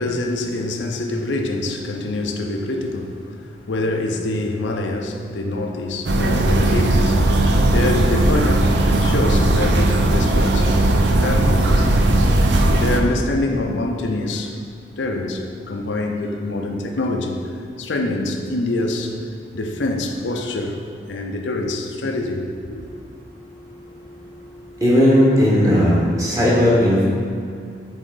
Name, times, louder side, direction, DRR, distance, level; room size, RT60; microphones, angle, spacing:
voice 1, 0.0-7.4 7.7-10.7 11.1-11.9 12.7-14.6 15.0-17.5 17.8-19.1 19.5-20.8 21.1-22.9, left 2 dB, 90° left, 3 dB, 0.6 m, -25 dB
sound 1, 6.0-13.0, right 1 dB, 70° right, 0.5 m, -17 dB
voice 2, 24.8-27.0, equal, 20° right, -7 dB, 1.5 m, -16 dB
8.1 x 3.6 x 3.9 m, 2.3 s
head